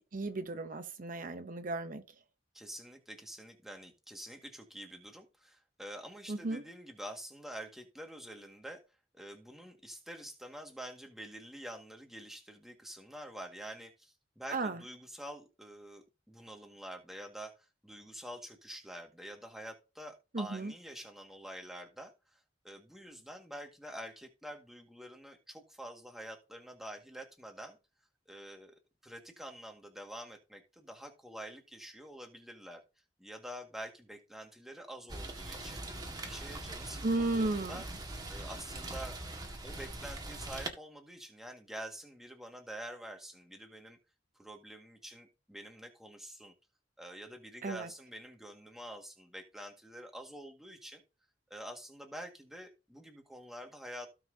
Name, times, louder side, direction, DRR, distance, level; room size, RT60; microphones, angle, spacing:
voice 1, 0.1-2.0 6.3-6.6 14.5-14.8 20.3-20.7 37.0-37.8 47.6-47.9, right 2 dB, 50° right, 0.8 m, -34 dB
voice 2, 2.5-8.8 9.1-22.4 22.6-27.8 28.3-32.8 33.2-35.8 36.2-37.9 38.3-39.2 39.6-44.0 44.4-46.5 47.0-51.0 51.5-54.1, right 1 dB, ahead, 1.8 m, -47 dB
Rain, 35.1-40.7, right 2 dB, 25° right, 1.8 m, -42 dB
16.5 x 5.8 x 2.8 m
head